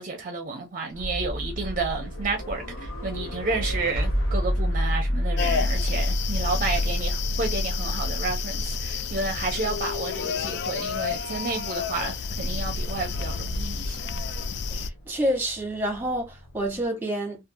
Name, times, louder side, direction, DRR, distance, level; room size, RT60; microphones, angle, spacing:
voice 1, 0.0-14.1, right 3 dB, 40° right, 0.5 m, -31 dB
sound 1, 0.9-16.8, equal, 75° left, 0.7 m, -31 dB
sound 2, 5.4-14.9, left 5 dB, 55° left, 0.3 m, -30 dB
voice 2, 14.7-17.5, equal, 10° right, 1.0 m, -28 dB
2.6 x 2.4 x 2.6 m
head